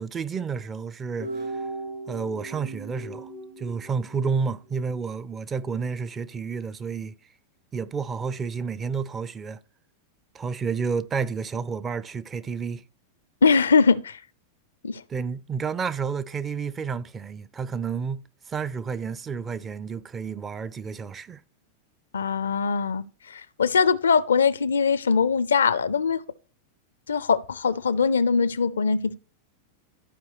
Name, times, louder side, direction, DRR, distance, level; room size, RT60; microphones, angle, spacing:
voice 1, 0.0-1.6 2.1-3.3 3.6-7.1 7.7-9.6 10.3-12.8 15.1-21.4, right 5 dB, 20° right, 0.4 m, -30 dB
sound 1, 1.2-4.4, right 2 dB, 70° right, 3.5 m, -37 dB
voice 2, 13.4-14.2 14.8-15.0 22.1-26.2 27.1-29.2, left 5 dB, 70° left, 0.4 m, -22 dB
13.5 x 4.7 x 3.0 m
figure-of-eight pair, 90°, 0 cm